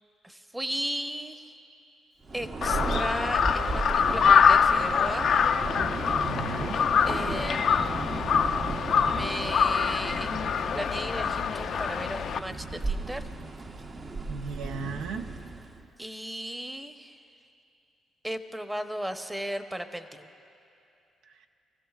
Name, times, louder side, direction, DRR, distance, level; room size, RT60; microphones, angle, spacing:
voice 1, 0.2-1.4 2.3-5.3 7.1-8.2 8.9-10.4 10.7-13.3 16.0-17.1 18.2-20.1, right 1 dB, 10° right, 8 dB, 0.8 m, -36 dB
Thunder, 2.2-15.9, right 3 dB, 45° right, 0.8 m, -35 dB
Crow, 2.6-12.4, left 6 dB, 65° left, 0.4 m, -24 dB
voice 2, 6.1-6.8 14.3-15.3 21.3-21.5, right 5 dB, 85° right, 5 dB, 0.7 m, -36 dB
24.0 x 15.0 x 2.4 m, 2.7 s
supercardioid pair, 65°, 0 cm